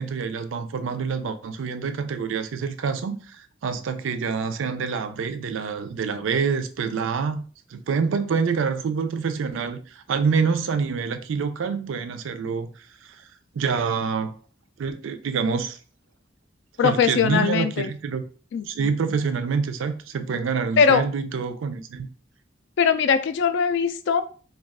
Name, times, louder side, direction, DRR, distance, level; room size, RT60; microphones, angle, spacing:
voice 1, 0.0-7.4 7.7-13.2 13.5-14.4 14.8-15.8 16.8-18.2 18.7-22.1, right 5 dB, 85° right, 0.4 m, -26 dB
voice 2, 16.8-17.9 18.5-18.9 20.8-21.0 22.8-24.2, left 6 dB, 65° left, 0.3 m, -21 dB
2.3 x 2.3 x 3.4 m
head